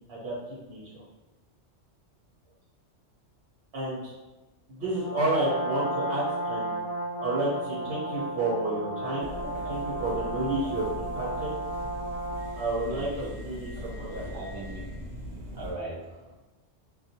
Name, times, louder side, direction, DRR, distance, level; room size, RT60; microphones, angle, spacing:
voice 1, 0.1-1.0 3.7-4.1 4.7-6.8 7.2-11.6 12.5-14.4, right 2 dB, 60° right, -8 dB, 1.2 m, -31 dB
Brass instrument, 4.9-12.7, right 2 dB, 35° left, 0.9 m, -33 dB
sound 1, 9.2-15.7, left 1 dB, 85° right, 0.9 m, -40 dB
voice 2, 12.9-15.1 15.5-16.3, right 2 dB, 35° right, -6 dB, 0.3 m, -40 dB
2.4 x 2.3 x 2.7 m, 1.1 s
omnidirectional pair, 1.3 m